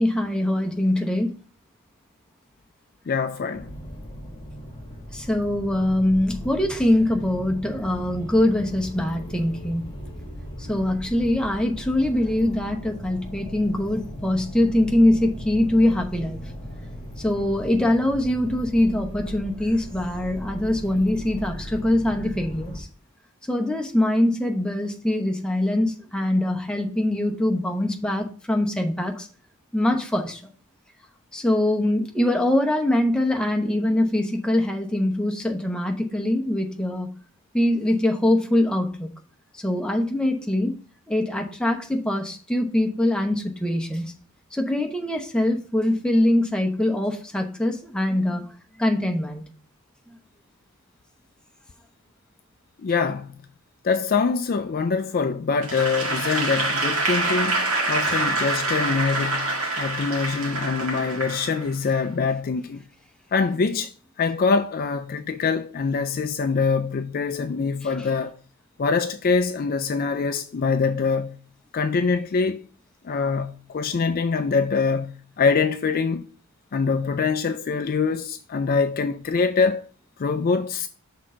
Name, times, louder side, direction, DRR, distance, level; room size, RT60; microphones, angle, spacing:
voice 1, 0.0-1.3 5.1-9.9 10.6-16.4 17.2-22.9 23.5-29.3 29.7-30.4 31.3-37.1 37.5-39.1 39.5-40.8 41.1-44.1 44.5-48.5 48.8-49.4 58.0-58.2 61.0-61.1 67.8-68.1, left 1 dB, 5° left, 0.9 m, -23 dB
voice 2, 3.1-3.7 52.8-53.4 53.8-62.8 63.3-63.9 64.2-68.3 68.8-71.4 71.7-72.6 73.0-76.3 76.7-79.8 80.2-80.9, left 5 dB, 40° left, 0.4 m, -24 dB
sound 1, 3.5-22.8, equal, 20° left, 1.7 m, -38 dB
Applause / Crowd, 55.6-61.9, right 2 dB, 70° right, 1.6 m, -26 dB
6.1 x 3.7 x 5.6 m
head